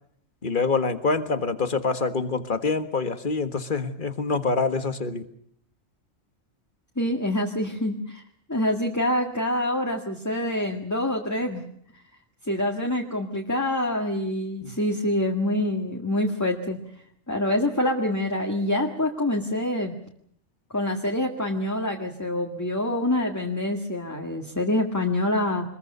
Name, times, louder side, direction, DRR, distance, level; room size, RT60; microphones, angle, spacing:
voice 1, 0.4-5.3 14.6-14.8, left 4 dB, 40° left, 10 dB, 1.7 m, -26 dB
voice 2, 7.0-8.2 8.5-11.6 12.5-16.8 17.3-19.9 20.7-25.7, left 1 dB, 15° left, 2 dB, 1.8 m, -26 dB
24.5 x 21.5 x 6.8 m, 0.67 s
omnidirectional pair, 1.3 m